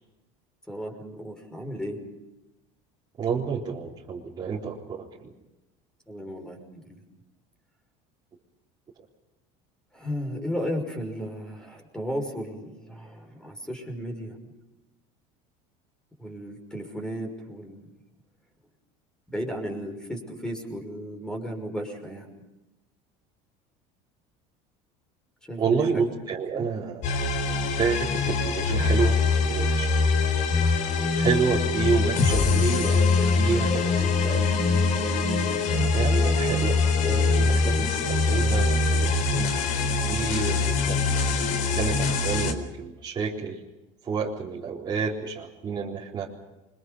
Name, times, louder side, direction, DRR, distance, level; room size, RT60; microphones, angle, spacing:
voice 1, 0.7-2.0 6.1-7.0 9.9-14.4 16.2-17.9 19.3-22.3 25.4-26.1 26.5-26.7, equal, 5° left, 3 dB, 5.8 m, -34 dB
voice 2, 3.2-5.3 25.6-27.0 27.7-29.2 29.5-29.9 31.2-34.4 35.9-39.6 40.0-41.0 41.7-43.6 44.0-46.3, right 6 dB, 25° right, -4 dB, 3.9 m, -29 dB
sound 1, 27.0-42.5, left 4 dB, 55° left, 4.0 m, -23 dB
29.5 x 24.5 x 5.5 m, 1.0 s
cardioid pair, 145°, 16 cm